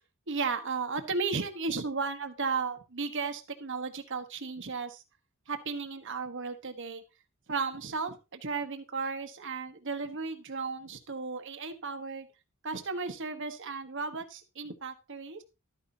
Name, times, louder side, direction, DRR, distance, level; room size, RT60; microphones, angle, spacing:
voice 1, 0.3-5.0 5.5-7.0 7.5-12.3 12.6-15.4, right 4 dB, 60° right, 7 dB, 1.3 m, -34 dB
12.5 x 9.4 x 2.8 m, 0.27 s
head